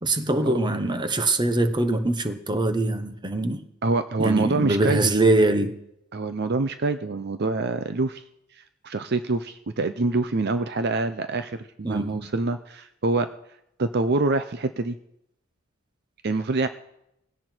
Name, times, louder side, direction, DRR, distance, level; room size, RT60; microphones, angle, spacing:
voice 1, 0.0-3.7 4.2-5.8 11.8-12.3, right 2 dB, 20° right, 9 dB, 1.0 m, -23 dB
voice 2, 3.8-5.1 6.1-8.2 8.8-13.3 13.8-15.0 16.2-16.7, right 3 dB, 50° right, 10 dB, 0.6 m, -25 dB
19.0 x 17.0 x 4.5 m, 0.81 s
head